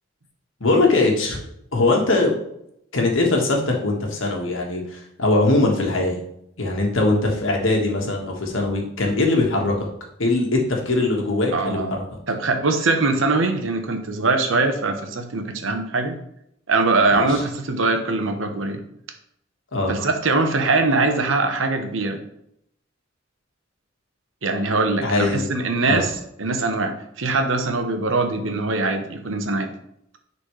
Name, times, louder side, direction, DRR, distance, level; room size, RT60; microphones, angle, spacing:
voice 1, 0.6-1.4 1.7-2.4 2.9-6.2 6.6-9.9 10.2-12.0 17.1-17.4 19.7-19.9 25.0-25.5 25.9-26.0, left 2 dB, 90° left, 0 dB, 1.6 m, -21 dB
voice 2, 11.5-12.0 12.3-16.2 16.7-18.8 19.9-22.2 24.4-29.7, right 3 dB, 85° right, 6 dB, 1.0 m, -22 dB
10.0 x 4.2 x 3.2 m, 0.75 s
head